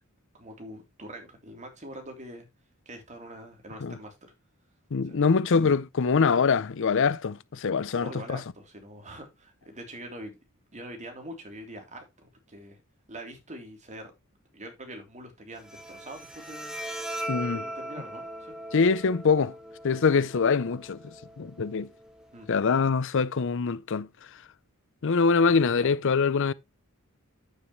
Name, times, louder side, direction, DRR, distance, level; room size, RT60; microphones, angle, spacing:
voice 1, 0.3-2.5 2.8-4.3 5.0-5.2 8.0-10.4 10.7-12.8 13.1-14.1 14.5-16.8 17.5-18.6 22.3-22.5 25.8-26.0, right 1 dB, 35° right, 3.3 m, -44 dB
voice 2, 4.9-8.4 17.3-17.6 18.7-19.5 19.8-21.9 22.5-24.1 25.0-26.5, left 5 dB, 60° left, 0.6 m, -24 dB
Bowed string instrument, 15.5-22.5, right 1 dB, 5° right, 2.0 m, -39 dB
9.6 x 8.8 x 3.1 m
head